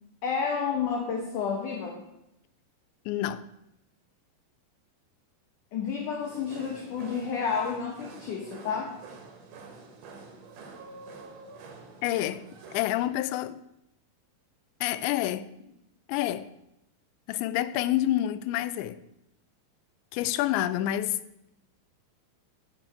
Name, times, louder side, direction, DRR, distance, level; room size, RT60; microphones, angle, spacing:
voice 1, 0.2-2.0 5.7-8.9, left 6 dB, 65° left, 2.2 m, -30 dB
voice 2, 3.1-3.4 12.0-12.4 12.7-13.6 14.8-15.5 16.1-16.5 17.3-19.0 20.1-21.2, left 13 dB, 90° left, 2.9 m, -28 dB
sound 1, 6.2-13.1, right 4 dB, 60° right, 2.7 m, -47 dB
12.5 x 6.1 x 7.4 m
omnidirectional pair, 5.1 m